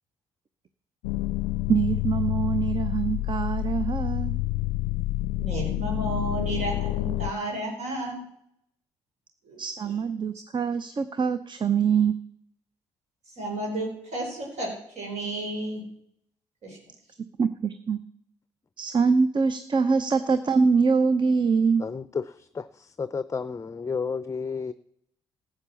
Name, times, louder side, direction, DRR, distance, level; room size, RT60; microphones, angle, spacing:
sound 1, 1.0-7.3, left 17 dB, 85° left, 0.4 m, -28 dB
voice 1, 1.7-4.3 9.6-12.1 17.4-18.0 18.8-21.8, right 5 dB, 40° right, 12 dB, 0.7 m, -24 dB
voice 2, 5.4-8.2 9.5-9.9 13.4-14.7 15.0-15.8 16.6-16.8, right 2 dB, 65° right, 0 dB, 4.2 m, -32 dB
voice 3, 21.8-22.2 22.5-24.7, left 5 dB, 25° left, 15 dB, 0.5 m, -31 dB
13.0 x 7.8 x 7.1 m, 0.72 s
hypercardioid pair, 50°, 12 cm